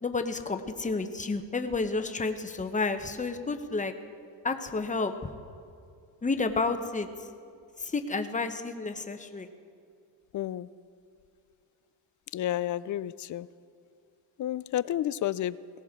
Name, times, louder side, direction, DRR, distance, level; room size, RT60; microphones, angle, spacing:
voice 1, 0.0-3.9 4.4-5.1 6.2-7.1 7.8-9.5, left 3 dB, 15° left, 7 dB, 0.9 m, -30 dB
voice 2, 10.3-10.7 12.3-13.5 14.4-15.6, left 12 dB, 45° left, 18 dB, 0.4 m, -30 dB
19.5 x 17.0 x 3.7 m, 2.4 s
cardioid pair, 100°, 44 cm